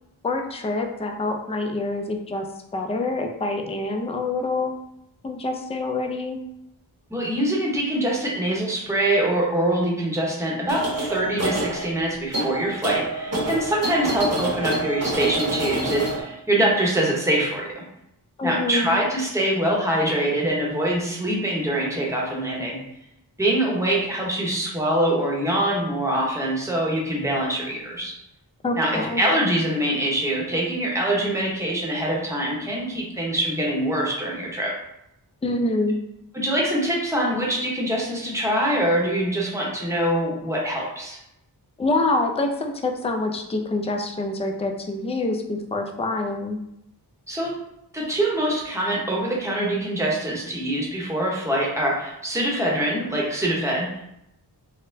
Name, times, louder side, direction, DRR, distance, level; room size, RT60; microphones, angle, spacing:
voice 1, 0.2-2.5 2.7-4.7 5.2-6.4 18.4-19.0 28.6-29.2 35.4-36.0 41.8-46.6, left 2 dB, 15° left, 4 dB, 0.3 m, -26 dB
voice 2, 7.1-17.8 18.4-22.8 23.4-28.1 28.7-34.7 36.3-41.2 47.3-47.6 47.9-54.0, right 1 dB, 5° right, -3 dB, 0.9 m, -24 dB
sound 1, 10.7-16.2, right 1 dB, 40° right, 0.9 m, -27 dB
4.1 x 2.1 x 2.6 m, 0.82 s
wide cardioid pair, 60°, 41 cm